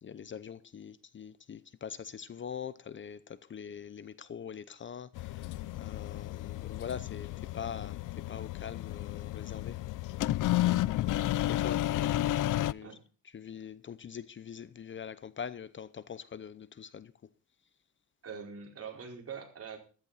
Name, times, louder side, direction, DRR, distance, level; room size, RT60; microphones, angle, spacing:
voice 1, 0.0-5.5 5.8-8.0 8.3-9.8 10.8-13.0 13.3-17.1, left 7 dB, 40° left, 0.7 m, -43 dB
sound 1, 5.1-12.7, left 14 dB, 70° left, 0.5 m, -32 dB
voice 2, 10.7-11.2 12.8-13.0 18.2-19.8, right 6 dB, 45° right, 4.5 m, -44 dB
14.5 x 13.5 x 4.1 m
cardioid pair, 130°, 32 cm